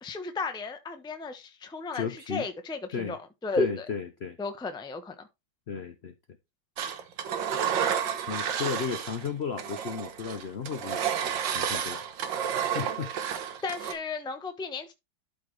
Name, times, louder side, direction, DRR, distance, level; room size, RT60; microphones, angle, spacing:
voice 1, 0.0-3.9 4.4-5.3 13.6-14.9, left 3 dB, 5° left, 0.4 m, -33 dB
voice 2, 1.9-2.5 2.9-3.2 3.6-4.4 5.7-6.1 8.3-12.2 12.7-13.1, left 6 dB, 75° left, 0.5 m, -34 dB
Engine, 6.8-9.3 9.6-13.9, right 8 dB, 70° right, 1.6 m, -31 dB
12.5 x 4.2 x 3.2 m
omnidirectional pair, 2.2 m